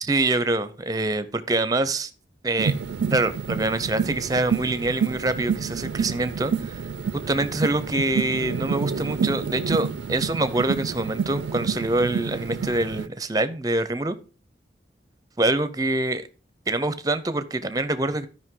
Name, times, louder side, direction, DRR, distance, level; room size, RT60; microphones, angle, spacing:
voice 1, 0.0-2.1 2.4-2.7 3.1-6.8 7.3-14.2 15.4-16.3 16.7-18.3, right 2 dB, 20° right, 13 dB, 0.6 m, -25 dB
sound 1, 2.6-13.1, right 6 dB, 80° right, 0.4 m, -28 dB
12.5 x 5.3 x 3.7 m, 0.36 s
head